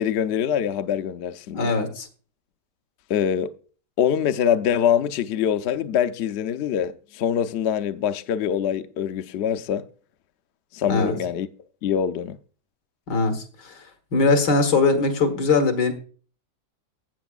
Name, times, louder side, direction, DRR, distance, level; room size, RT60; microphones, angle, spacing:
voice 1, 0.0-1.7 3.1-3.5 4.0-9.8 10.7-11.5 11.8-12.4, left 9 dB, 70° left, 0.6 m, -24 dB
voice 2, 1.5-2.1 10.9-11.2 13.1-15.9, left 3 dB, 85° left, 2.1 m, -21 dB
15.0 x 7.9 x 2.4 m
omnidirectional pair, 1.8 m